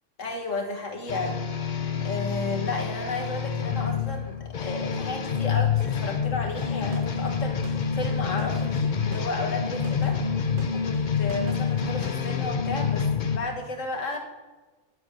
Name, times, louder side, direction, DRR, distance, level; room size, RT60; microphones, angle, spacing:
voice 1, 0.2-10.2 10.7-14.2, left 3 dB, 80° left, 2 dB, 1.9 m, -33 dB
sound 1, 1.1-13.4, left 6 dB, 45° left, 0.7 m, -27 dB
sound 2, 6.5-12.3, right 4 dB, 45° right, 1.0 m, -45 dB
9.4 x 7.8 x 6.5 m, 1.3 s
omnidirectional pair, 1.3 m